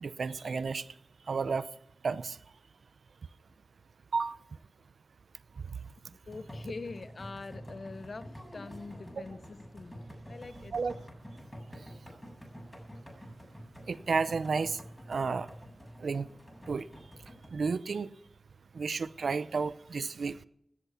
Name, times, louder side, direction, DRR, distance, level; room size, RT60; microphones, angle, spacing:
voice 1, 0.0-0.9 1.3-1.7 2.0-2.4 4.1-4.4 9.2-9.3 10.7-11.0 13.9-14.8 15.1-15.5 16.0-16.3 16.7-16.9 17.5-18.1 18.7-20.4, right 4 dB, 85° right, 0.6 m, -31 dB
sound 1, 6.2-17.5, equal, 15° left, 7.9 m, -48 dB
voice 2, 6.3-10.7, left 3 dB, 65° left, 1.0 m, -44 dB
17.5 x 10.5 x 5.8 m
cardioid pair, 45°, 0 cm